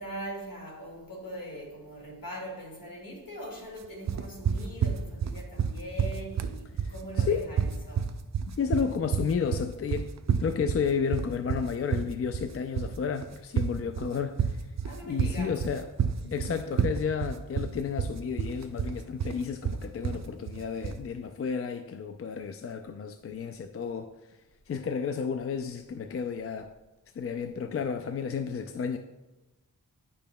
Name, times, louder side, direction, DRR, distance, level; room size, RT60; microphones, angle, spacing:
voice 1, 0.0-8.2 13.7-13.9 14.8-15.6 16.2-16.5, right 1 dB, 65° left, 2.1 m, -41 dB
sound 1, 4.1-21.1, right 7 dB, 50° right, 0.5 m, -29 dB
voice 2, 7.2-7.5 8.5-10.1 10.4-14.5 15.0-15.8 16.3-24.1 24.7-26.7 27.2-29.0, left 6 dB, 40° left, 0.4 m, -32 dB
9.7 x 5.4 x 2.2 m
cardioid pair, 55°, 36 cm